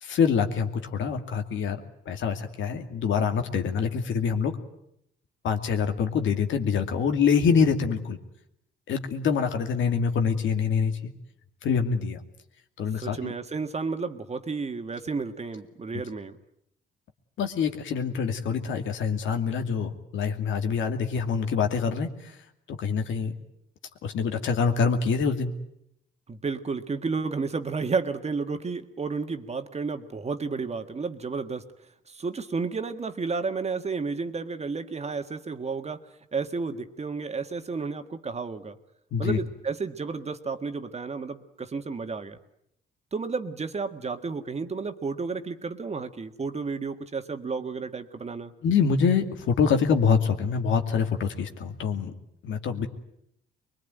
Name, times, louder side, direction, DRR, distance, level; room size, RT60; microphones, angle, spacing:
voice 1, 0.0-1.8 2.1-4.6 5.4-8.2 8.9-11.1 11.6-12.2 12.8-13.3 17.4-22.3 22.7-23.3 24.0-25.5 39.1-39.4 48.6-52.1 52.4-52.9, left 6 dB, 75° left, 5 dB, 2.5 m, -25 dB
voice 2, 13.0-16.4 26.3-31.7 32.1-36.0 36.3-38.8 39.2-42.4 43.1-48.5, right 4 dB, 35° right, 8 dB, 1.8 m, -32 dB
23.5 x 22.0 x 9.2 m, 0.76 s
cardioid pair, 90°, 20 cm